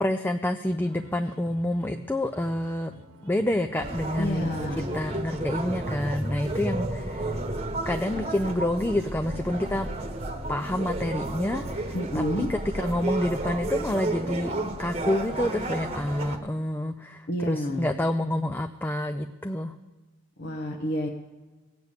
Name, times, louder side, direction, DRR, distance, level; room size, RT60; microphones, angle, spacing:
voice 1, 0.0-2.9 3.2-7.4 7.9-9.9 10.5-14.5 14.8-19.7, left 1 dB, 10° left, 7 dB, 0.3 m, -28 dB
sound 1, 0.6-12.6, right 1 dB, 75° right, 1.3 m, -50 dB
sound 2, 3.8-16.4, right 2 dB, 30° right, 1.1 m, -32 dB
voice 2, 4.2-5.0 11.9-12.5 17.3-17.9 20.4-21.1, equal, 50° left, 0 dB, 1.0 m, -29 dB
17.5 x 6.9 x 8.2 m, 1.3 s
head